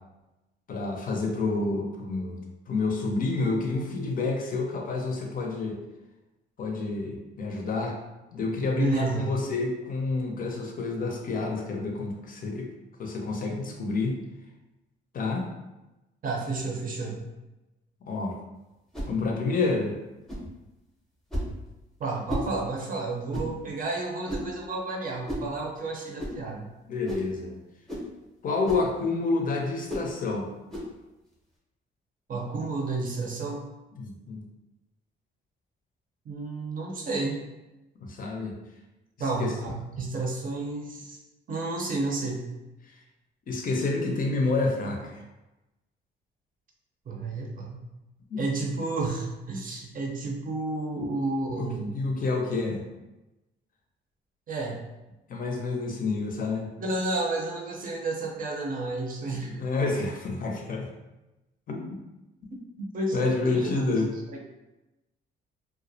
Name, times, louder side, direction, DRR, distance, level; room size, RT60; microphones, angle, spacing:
voice 1, 0.7-2.4 2.7-5.8 6.6-8.0 8.3-12.7 13.0-14.2 15.1-15.5 18.1-18.4 19.1-19.9 26.9-27.5 28.4-30.5 34.0-34.4 38.0-38.6 39.2-39.5 43.5-45.2 48.3-48.4 50.9-51.0 51.5-52.8 55.3-56.7 59.4-60.9 61.7-62.0 63.1-64.1, left 3 dB, 45° left, 1 dB, 0.5 m, -29 dB
voice 2, 8.8-9.3 16.2-17.2 22.0-26.7 32.3-33.6 36.3-37.4 39.2-41.2 41.5-42.5 47.1-47.8 48.4-51.9 54.5-54.8 56.8-59.6 62.9-63.9 64.3-64.4, right 3 dB, 45° right, -1 dB, 0.6 m, -31 dB
sound 1, 18.9-19.1 20.3-20.5 21.3-21.5 22.3-22.5 23.3-23.5 24.3-24.5 25.3-25.5 26.2-26.4 27.1-27.3 27.9-28.1 28.6-28.9 29.9-30.1 30.7-30.9, equal, ahead, 0.7 m, -33 dB
2.3 x 2.0 x 2.6 m, 1.0 s
cardioid pair, 90°, 20 cm